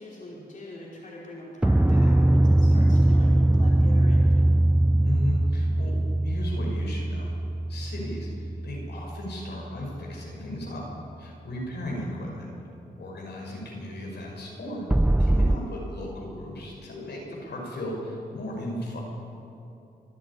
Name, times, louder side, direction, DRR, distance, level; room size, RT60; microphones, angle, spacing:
voice 1, 0.0-4.5, left 1 dB, 45° left, -5 dB, 4.9 m, -43 dB
sound 1, 1.6-10.0 14.9-15.6, right 1 dB, 5° right, 0.4 m, -21 dB
voice 2, 5.0-6.0 6.2-7.3 7.7-10.8 11.2-12.5 13.0-14.8 15.2-19.0, left 1 dB, 75° left, -2 dB, 6.0 m, -35 dB
25.5 x 10.5 x 10.0 m, 2.9 s
cardioid pair, 85°, 18 cm